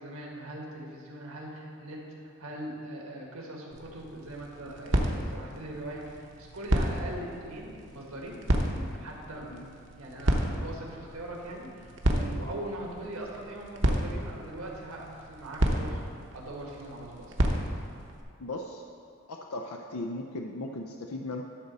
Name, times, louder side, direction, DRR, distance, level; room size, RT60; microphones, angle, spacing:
voice 1, 0.0-16.0 16.3-17.3, right 1 dB, 80° right, -2 dB, 1.8 m, -41 dB
sound 1, 3.7-18.2, right 1 dB, 55° right, 0.9 m, -32 dB
voice 2, 18.4-18.8 19.3-21.4, left 2 dB, 90° left, 2 dB, 0.6 m, -37 dB
12.0 x 4.1 x 6.6 m, 2.4 s
head